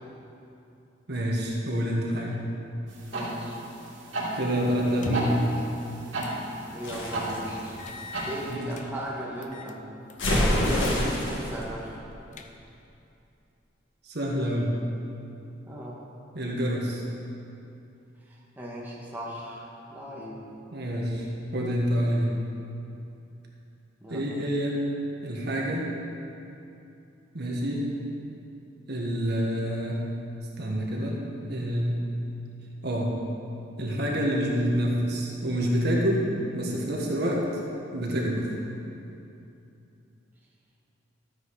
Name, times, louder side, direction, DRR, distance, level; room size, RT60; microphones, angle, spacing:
voice 1, 1.1-2.4 4.3-5.4 8.5-8.6 14.0-14.7 16.3-17.0 20.7-21.3 21.5-22.3 24.1-24.8 25.2-25.9 27.3-27.9 28.9-30.0 30.6-31.2 31.5-32.0 32.8-33.1 33.8-36.3 36.5-37.4 37.9-38.5, equal, 60° right, -2 dB, 1.7 m, -27 dB
sound 1, 2.9-8.5, right 1 dB, 85° right, 3.0 m, -35 dB
voice 2, 3.1-3.6 5.0-5.4 6.7-7.8 8.3-9.8 10.5-12.0 15.7-16.0 18.3-20.4 24.0-24.4, right 1 dB, 10° right, -5 dB, 1.6 m, -36 dB
sound 2, 4.9-5.5 6.2-6.4 6.8-6.9 7.8-8.9 9.4-9.8 10.1-10.4 10.8-11.2 11.5-11.6 12.1-12.8, left 3 dB, 40° left, 0.7 m, -40 dB
sound 3, 6.8-8.7 10.2-11.5, left 1 dB, 70° left, 2.0 m, -27 dB
12.5 x 9.1 x 4.9 m, 2.8 s
head